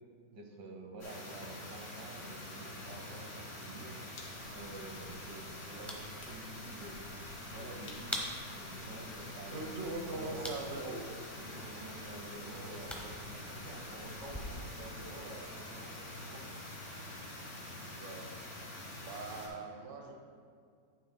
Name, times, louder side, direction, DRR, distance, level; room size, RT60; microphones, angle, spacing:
voice 1, 0.3-4.0 4.5-7.0 7.4-9.7 10.1-10.6 11.4-16.6, right 2 dB, 75° right, 2 dB, 1.6 m, -49 dB
sound 1, 1.0-19.5, left 1 dB, 35° left, 2.1 m, -46 dB
sound 2, 4.4-14.4, equal, ahead, 0.4 m, -48 dB
sound 3, 7.8-9.5, left 3 dB, 80° left, 1.8 m, -61 dB
voice 2, 9.5-11.0 17.9-18.3 19.0-20.1, right 2 dB, 45° right, 2 dB, 0.8 m, -41 dB
10.5 x 9.2 x 2.2 m, 2.3 s
omnidirectional pair, 1.9 m